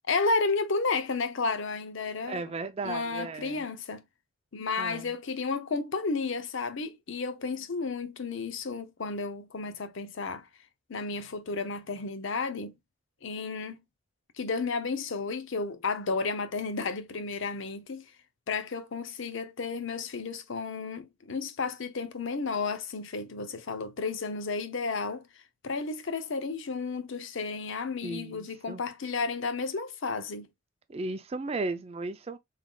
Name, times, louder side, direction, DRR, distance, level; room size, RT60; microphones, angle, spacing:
voice 1, 0.1-2.4 2.8-4.0 4.5-10.5 10.9-12.8 13.2-13.8 14.4-18.1 18.5-25.3 25.6-30.5, left 4 dB, 60° left, 0.6 m, -32 dB
voice 2, 2.3-3.6 4.8-5.1 28.0-28.8 30.9-32.4, right 3 dB, 30° right, 0.4 m, -35 dB
3.7 x 3.7 x 2.3 m
head